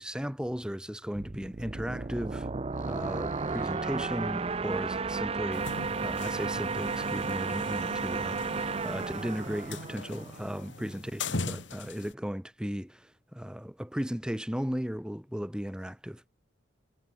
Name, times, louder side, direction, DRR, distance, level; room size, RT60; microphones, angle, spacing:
voice 1, 0.0-2.5 2.8-5.7 6.0-16.2, equal, 5° right, 1.1 m, -36 dB
sound 1, 1.1-10.7, right 4 dB, 30° right, 0.5 m, -33 dB
sound 2, 2.7-9.5, left 1 dB, 45° left, 6.1 m, -52 dB
sound 3, 5.5-12.1, left 3 dB, 70° left, 2.4 m, -40 dB
head